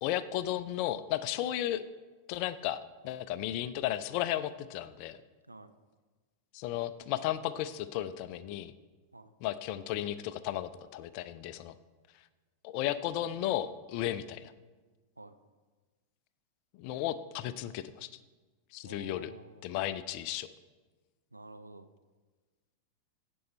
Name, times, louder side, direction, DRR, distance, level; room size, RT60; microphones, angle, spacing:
voice 1, 0.0-1.8 2.3-2.8 3.0-5.2 6.5-8.7 9.4-11.7 12.6-14.5 16.8-18.1 18.7-19.3 19.6-20.5, left 12 dB, 45° left, 14 dB, 0.4 m, -34 dB
voice 2, 18.8-19.7 21.3-21.9, right 2 dB, 85° right, 9 dB, 0.5 m, -50 dB
16.0 x 5.4 x 4.3 m, 1.3 s
figure-of-eight pair, 90°, 0 cm